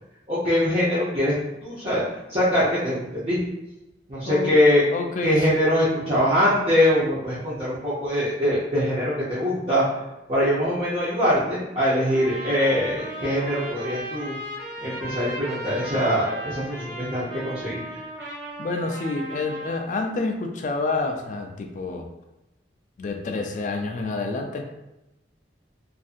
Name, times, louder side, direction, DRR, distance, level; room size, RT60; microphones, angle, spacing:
voice 1, 0.3-1.3 1.6-2.0 2.3-3.4 4.1-4.8 5.2-10.0 10.3-14.3 14.8-17.8, equal, 35° right, -11 dB, 0.6 m, -23 dB
voice 2, 4.3-4.6 4.9-5.5 18.6-22.1 23.0-24.6, left 3 dB, 45° left, 4 dB, 0.3 m, -28 dB
Trumpet, 12.1-19.8, right 1 dB, 70° right, 0.7 m, -36 dB
2.6 x 2.5 x 2.4 m, 0.95 s
head